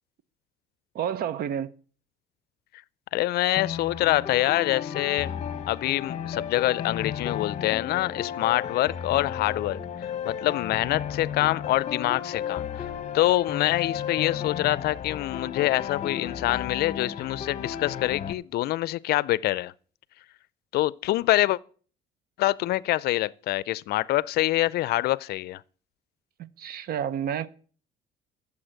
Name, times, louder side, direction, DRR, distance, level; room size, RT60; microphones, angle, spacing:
voice 1, 0.9-1.7 26.6-27.5, right 9 dB, 65° right, 0.8 m, -29 dB
voice 2, 3.1-5.3 5.7-9.8 10.3-12.9 13.1-19.7 20.7-21.6 22.4-25.6, left 16 dB, 70° left, 0.5 m, -25 dB
sound 1, 3.6-18.3, left 8 dB, 40° left, 1.0 m, -33 dB
13.5 x 7.1 x 6.4 m
cardioid pair, 110°, 17 cm